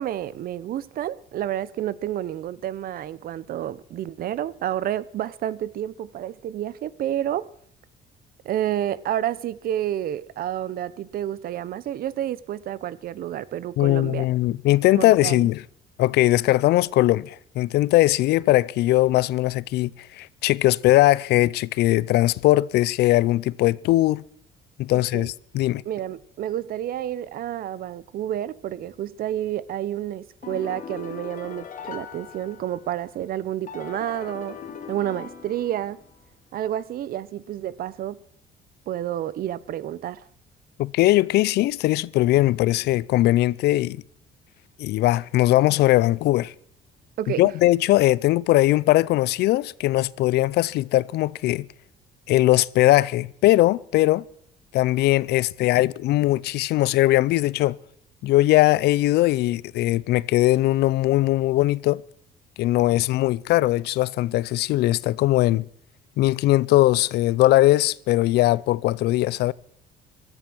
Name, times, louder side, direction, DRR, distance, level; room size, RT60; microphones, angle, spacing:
voice 1, 0.0-7.5 8.4-14.3 14.9-15.5 25.1-25.3 25.9-34.6 34.9-36.0 36.5-38.2 38.9-40.2 47.2-47.5, right 11 dB, 60° right, 0.8 m, -29 dB
voice 2, 13.8-15.6 16.0-24.2 24.8-25.8 40.8-44.0 44.8-46.5 47.4-51.7 52.3-54.2 54.7-57.8 58.2-62.0 62.6-65.7 66.2-69.5, left 16 dB, 75° left, 0.5 m, -20 dB
sound 1, 30.4-33.0 33.7-36.1, left 7 dB, 50° left, 2.2 m, -39 dB
16.0 x 13.5 x 6.2 m
cardioid pair, 110°, 17 cm